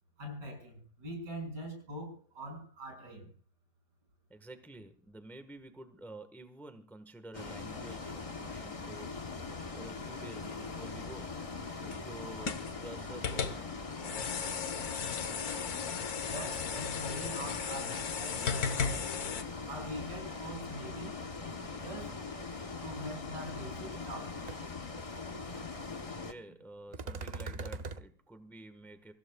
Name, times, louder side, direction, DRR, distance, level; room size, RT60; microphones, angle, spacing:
voice 1, 0.2-3.3 16.2-19.1 19.7-21.2 21.8-22.2 22.8-24.5, right 1 dB, 90° right, 7.4 m, -43 dB
voice 2, 4.3-9.3 9.7-14.6 26.2-29.1, right 2 dB, ahead, 1.1 m, -50 dB
Bus, 7.3-26.3, left 4 dB, 25° left, 1.0 m, -41 dB
sound 1, 9.9-19.4, left 6 dB, 65° left, 1.6 m, -37 dB
sound 2, 23.5-23.6 23.9-24.2 24.5-24.6 26.9-28.0, right 3 dB, 40° right, 0.6 m, -40 dB
28.0 x 15.5 x 2.3 m
omnidirectional pair, 1.8 m